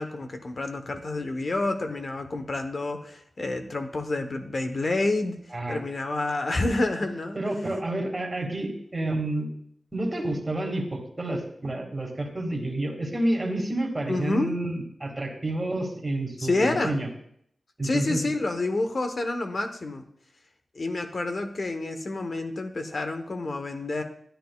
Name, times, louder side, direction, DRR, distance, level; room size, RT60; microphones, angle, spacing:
voice 1, 0.0-5.4 5.7-7.4 14.1-14.5 16.4-17.0 17.8-20.0 20.7-24.0, left 2 dB, 50° left, 7 dB, 0.9 m, -28 dB
voice 2, 7.4-9.5 9.9-17.1 17.8-18.4, right 1 dB, 25° right, 1 dB, 1.9 m, -29 dB
12.5 x 10.0 x 2.3 m, 0.69 s
wide cardioid pair, 110°, 0 cm